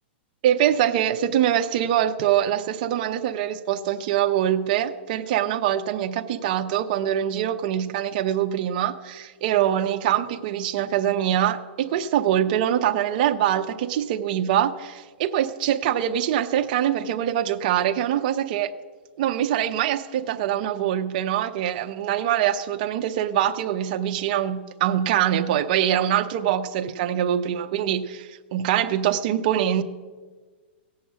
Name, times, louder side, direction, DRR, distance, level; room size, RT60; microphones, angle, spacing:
voice 1, 0.4-18.7 19.2-29.8, right 10 dB, 45° right, 0.7 m, -24 dB
17.0 x 7.7 x 8.2 m
hypercardioid pair, 160°, 6 cm